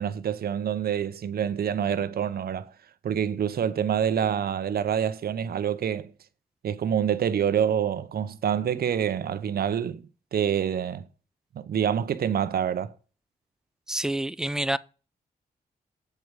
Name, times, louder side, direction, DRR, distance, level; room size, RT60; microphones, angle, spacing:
voice 1, 0.0-2.7 3.0-6.1 6.6-10.0 10.3-11.0 11.5-12.9, right 8 dB, 70° right, 0.7 m, -26 dB
voice 2, 13.9-14.8, right 1 dB, 5° right, 0.4 m, -27 dB
7.7 x 4.8 x 6.8 m
cardioid pair, 75°, 16 cm